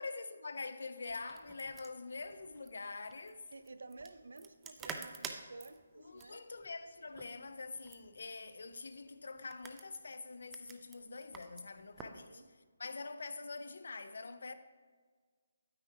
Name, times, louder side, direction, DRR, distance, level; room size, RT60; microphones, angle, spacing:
voice 1, 0.0-3.5 6.0-14.5, left 3 dB, 70° left, 0.5 m, -45 dB
sound 1, 1.1-12.2, right 6 dB, 10° right, 0.5 m, -51 dB
voice 2, 3.5-6.4 12.0-12.5, right 3 dB, 80° right, 0.6 m, -52 dB
9.3 x 9.1 x 2.9 m
hypercardioid pair, 160°, 0 cm